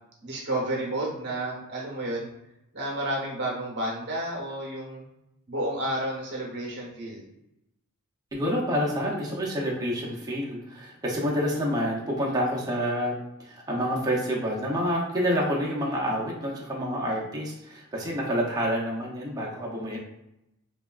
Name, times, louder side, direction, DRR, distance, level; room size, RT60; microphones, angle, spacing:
voice 1, 0.2-2.3 2.7-5.1 5.5-7.2, right 1 dB, 50° right, -2 dB, 0.8 m, -31 dB
voice 2, 8.3-13.1 13.4-20.0, equal, 15° right, -4 dB, 0.6 m, -28 dB
3.3 x 2.2 x 2.3 m, 0.86 s
head